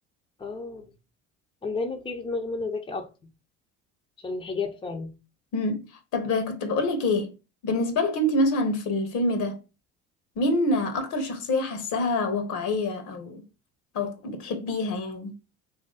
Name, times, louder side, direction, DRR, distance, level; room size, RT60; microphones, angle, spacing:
voice 1, 0.4-0.8 1.6-3.1 4.2-5.1, left 3 dB, 15° left, 0.7 m, -31 dB
voice 2, 5.5-5.9 6.1-7.3 7.6-9.6 10.4-13.4 13.9-15.3, left 2 dB, 60° left, 1.0 m, -26 dB
3.0 x 2.7 x 3.9 m
hypercardioid pair, 70°, 34 cm